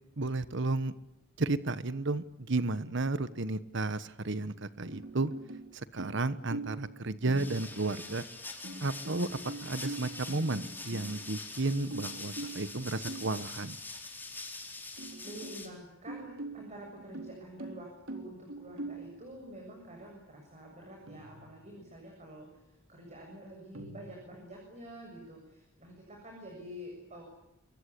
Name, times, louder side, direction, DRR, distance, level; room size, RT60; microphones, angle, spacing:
voice 1, 0.2-0.9 1.4-5.3 5.7-8.2 8.8-13.8, right 2 dB, 60° right, 14 dB, 1.2 m, -33 dB
sound 1, 4.6-5.7 6.0-6.9 7.3-7.9 8.6-11.5 11.9-13.4 14.0-14.1 14.5-14.6 15.0-15.7 16.1-19.1 21.1-21.8 23.7-24.0, right 2 dB, 80° right, 4.0 m, -43 dB
sound 2, 7.4-15.7, left 3 dB, 10° left, 4.1 m, -44 dB
voice 2, 15.2-27.2, equal, 35° right, 1 dB, 7.4 m, -48 dB
27.5 x 23.0 x 8.5 m, 0.87 s
head